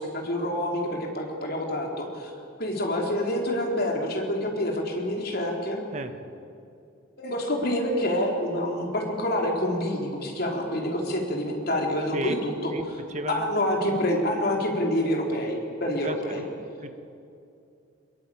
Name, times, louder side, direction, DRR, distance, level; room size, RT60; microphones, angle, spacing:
voice 1, 0.0-2.3 2.6-5.8 7.2-12.7 13.3-16.4, left 1 dB, 50° left, 0 dB, 4.1 m, -27 dB
voice 2, 13.1-13.5 16.0-16.9, right 1 dB, 35° right, 8 dB, 1.5 m, -33 dB
22.5 x 22.5 x 8.8 m, 2.6 s
head